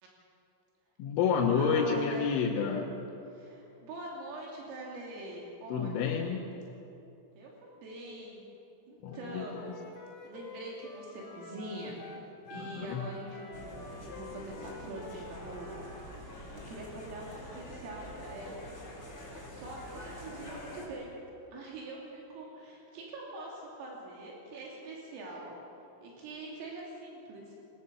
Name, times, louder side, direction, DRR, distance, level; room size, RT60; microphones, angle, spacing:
voice 1, 1.0-3.0 5.7-6.4 9.0-9.7 12.5-13.1, left 6 dB, 75° left, -2 dB, 3.6 m, -30 dB
voice 2, 1.6-2.3 3.3-6.1 7.4-8.4 8.9-9.7 10.2-12.0 12.5-15.8 16.2-18.7 19.0-19.1 19.5-21.1 21.5-25.6 26.0-27.7, right 2 dB, 80° right, -2 dB, 5.4 m, -43 dB
Wind instrument woodwind instrument, 9.1-15.9, left 3 dB, 55° left, 4.0 m, -49 dB
sound 1, 13.5-20.9, equal, 15° left, 3.4 m, -46 dB
23.0 x 20.0 x 7.0 m, 2.9 s
omnidirectional pair, 5.9 m